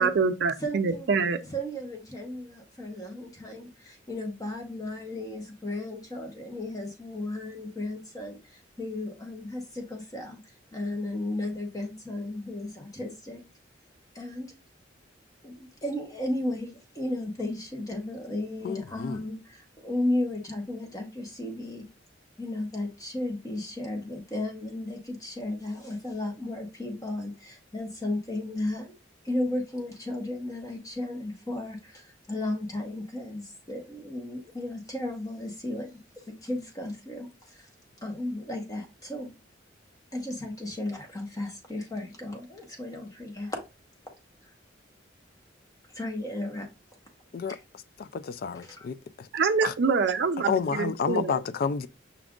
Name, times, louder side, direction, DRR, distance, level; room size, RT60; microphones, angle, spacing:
voice 1, 0.0-1.4 49.3-51.4, right 5 dB, 60° right, 0.4 m, -25 dB
voice 2, 0.6-1.1 1.5-10.4 10.7-13.4 14.1-14.5 15.4-21.8 22.4-28.9 29.2-36.0 36.3-37.7 38.0-39.3 40.1-43.6 45.9-46.7 47.5-47.6 48.6-48.9, left 1 dB, 20° left, 0.9 m, -34 dB
voice 3, 18.6-19.2 47.3-47.6 48.0-49.3 49.6-49.7 50.5-51.9, left 6 dB, 50° left, 0.3 m, -30 dB
5.9 x 2.4 x 3.6 m
head